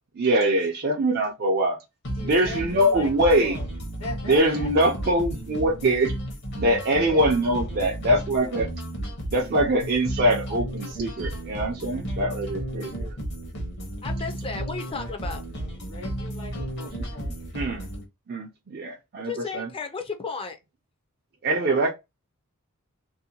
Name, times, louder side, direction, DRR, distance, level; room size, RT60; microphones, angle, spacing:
voice 1, 0.2-1.8 2.2-3.6 4.2-6.2 6.5-8.7 9.3-13.2 17.5-17.9 18.3-19.7 21.4-21.9, right 1 dB, 45° right, 0.4 m, -23 dB
sound 1, 2.0-18.0, right 1 dB, 50° left, 0.9 m, -33 dB
voice 2, 2.1-3.7 4.0-4.7 6.9-8.7 11.9-12.0 15.8-17.3, left 2 dB, 75° left, 1.1 m, -40 dB
voice 3, 14.0-15.4 19.2-20.6, left 4 dB, 25° left, 0.5 m, -33 dB
2.7 x 2.1 x 2.7 m
head